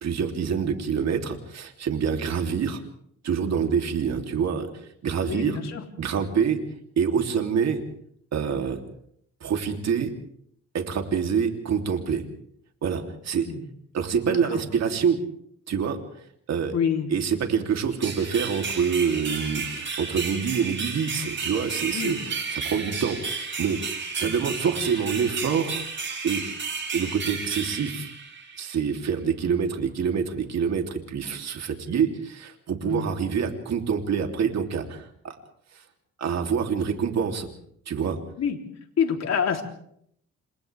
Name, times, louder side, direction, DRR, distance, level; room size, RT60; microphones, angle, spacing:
voice 1, 0.0-2.8 3.2-5.6 6.0-6.6 7.0-7.8 8.3-8.8 9.4-10.1 10.7-12.2 12.8-13.5 13.9-15.2 15.7-16.0 16.5-16.7 17.1-23.8 24.1-25.8 26.2-26.4 26.9-28.1 28.6-35.4 35.7-35.8 36.2-37.5 37.9-38.2, right 6 dB, 60° right, 4 dB, 3.3 m, -26 dB
voice 2, 5.2-5.8 13.4-13.6 14.3-14.6 16.7-17.1 21.9-22.2 24.2-24.3 32.8-33.1 38.4-38.6 39.0-39.6, left 7 dB, 60° left, 3 dB, 3.5 m, -27 dB
sound 1, 18.0-28.7, right 4 dB, 40° right, 6.7 m, -32 dB
29.0 x 26.5 x 3.5 m, 0.69 s
cardioid pair, 90°, 30 cm